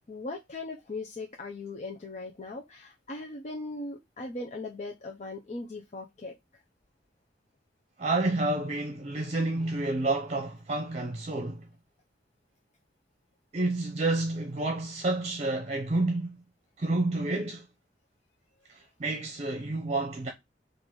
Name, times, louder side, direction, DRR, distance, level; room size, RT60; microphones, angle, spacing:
voice 1, 0.0-6.3, left 2 dB, 40° left, 0.6 m, -39 dB
voice 2, 8.0-11.7 13.5-16.4 16.8-17.7 18.7-20.3, right 2 dB, 40° right, 0.7 m, -29 dB
3.8 x 2.5 x 4.5 m
head